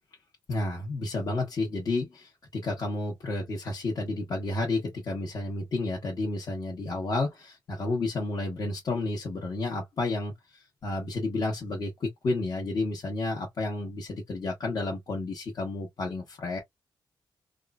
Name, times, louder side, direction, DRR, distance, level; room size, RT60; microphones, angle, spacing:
voice 1, 0.5-16.6, left 2 dB, 50° left, 1.1 m, -31 dB
3.6 x 2.1 x 2.4 m
cardioid pair, 110°, 8 cm